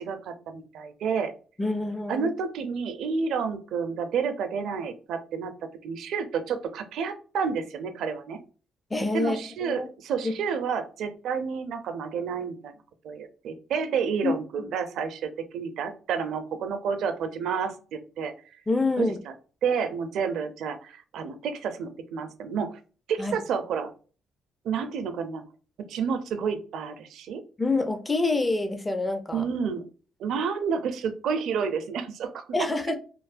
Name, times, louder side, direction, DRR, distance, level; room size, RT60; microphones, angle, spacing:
voice 1, 0.0-1.3 2.1-5.5 5.8-8.4 9.1-12.7 13.0-18.3 19.0-19.1 19.6-22.8 23.1-23.9 24.6-25.4 25.8-27.4 29.3-29.8 30.2-32.4, right 6 dB, 75° right, 8 dB, 0.5 m, -30 dB
voice 2, 1.6-2.3 8.9-9.9 10.2-10.3 14.2-14.3 18.7-19.2 23.2-23.4 27.6-29.5 32.5-33.0, left 3 dB, 20° left, 7 dB, 0.5 m, -26 dB
3.0 x 2.0 x 2.5 m, 0.37 s
cardioid pair, 95°, 0 cm